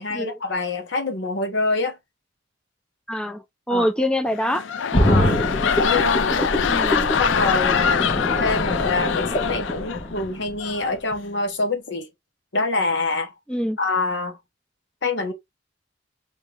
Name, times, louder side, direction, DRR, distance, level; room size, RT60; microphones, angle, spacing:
voice 1, 0.0-2.0 3.7-3.9 5.1-5.4 5.8-6.5 7.2-12.1 12.5-13.3 13.8-14.4 15.0-15.3, left 3 dB, 70° left, 1.0 m, -25 dB
voice 2, 3.1-4.6 6.7-7.1 13.5-13.8, equal, 5° left, 0.4 m, -25 dB
sound 1, 4.3-10.2 10.6-10.9, left 7 dB, 85° left, 0.4 m, -24 dB
sound 2, 4.9-10.7 11.1-11.2, left 1 dB, 45° left, 1.2 m, -24 dB
3.5 x 2.7 x 3.2 m
head